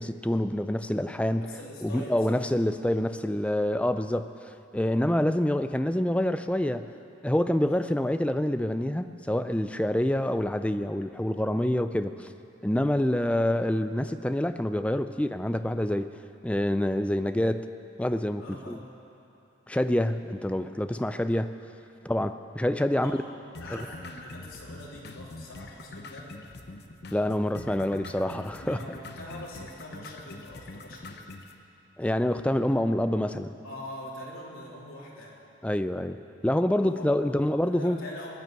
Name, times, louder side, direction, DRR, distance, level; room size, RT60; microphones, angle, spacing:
voice 1, 0.0-1.5 1.8-6.9 7.2-12.3 12.6-16.1 16.4-17.7 18.0-18.8 19.7-21.5 22.0-23.1 27.1-28.8 32.0-33.6 35.6-38.0, left 1 dB, 5° left, 10 dB, 0.4 m, -27 dB
voice 2, 1.3-2.4 7.6-7.9 18.4-18.8 23.0-26.3 28.6-31.2 33.6-35.4 36.8-37.3 37.6-38.4, left 1 dB, 85° left, -4 dB, 3.5 m, -43 dB
sound 1, 23.5-31.5, left 2 dB, 50° left, 0.9 m, -44 dB
19.0 x 9.6 x 7.6 m, 2.9 s
head